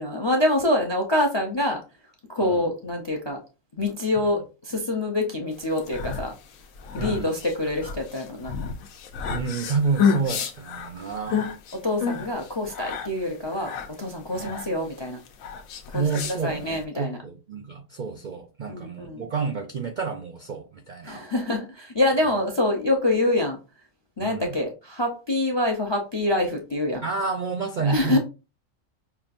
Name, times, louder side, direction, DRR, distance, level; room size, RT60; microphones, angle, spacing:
voice 1, 0.0-1.8 2.3-3.4 3.8-6.3 6.9-8.6 11.0-11.1 11.7-15.2 15.9-17.2 18.7-19.2 21.0-23.6 24.2-27.0 27.8-28.2, left 1 dB, 40° left, 0.4 m, -26 dB
sound 1, 5.6-16.8, left 6 dB, 85° left, 1.1 m, -30 dB
voice 2, 7.0-7.3 9.3-11.5 14.4-14.6 15.9-21.2 24.2-24.6 27.0-28.2, right 5 dB, 65° right, 0.4 m, -29 dB
5.6 x 2.4 x 2.5 m
omnidirectional pair, 1.4 m